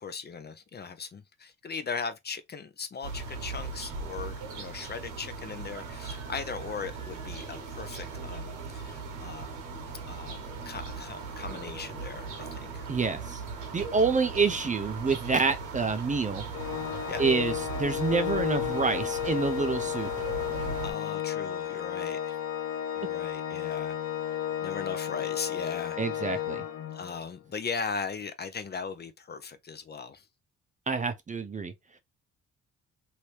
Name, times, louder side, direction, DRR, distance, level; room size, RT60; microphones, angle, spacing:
voice 1, 0.0-9.5 10.1-10.4 10.6-12.9 17.1-17.2 20.8-22.4 23.0-24.0 24.3-26.4 26.9-30.3, left 5 dB, 35° left, 0.5 m, -38 dB
sound 1, 3.0-20.9, right 4 dB, 90° right, 1.2 m, -39 dB
voice 2, 12.9-13.4 13.7-16.5 17.2-20.1 26.0-26.6 30.9-31.7, right 4 dB, 25° right, 0.5 m, -27 dB
Organ, 16.5-27.3, left 11 dB, 65° left, 0.9 m, -33 dB
3.0 x 2.7 x 3.1 m
cardioid pair, 90°, 30 cm